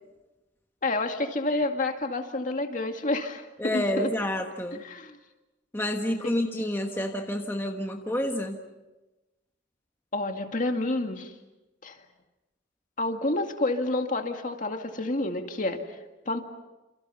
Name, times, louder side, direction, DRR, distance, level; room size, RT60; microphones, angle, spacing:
voice 1, 0.8-4.1 4.8-5.2 6.1-6.3 6.9-7.0 10.1-11.3 11.8-12.0 13.0-15.8 16.3-16.4, left 2 dB, 45° left, 4 dB, 2.2 m, -29 dB
voice 2, 3.6-4.8 5.7-8.6, left 1 dB, 10° left, 3 dB, 1.4 m, -29 dB
28.5 x 28.0 x 5.7 m, 1.1 s
head